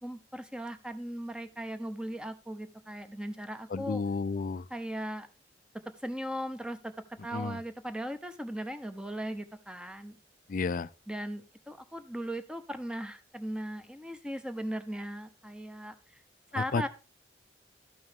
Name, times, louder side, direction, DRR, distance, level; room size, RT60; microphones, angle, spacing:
voice 1, 0.0-4.0 4.7-5.3 6.0-6.9 7.2-10.1 11.1-15.9 16.5-16.9, right 1 dB, 5° right, 0.8 m, -38 dB
voice 2, 3.7-4.6 7.3-7.6 10.5-10.9 16.6-16.9, left 4 dB, 50° left, 0.4 m, -31 dB
12.5 x 5.5 x 3.6 m
head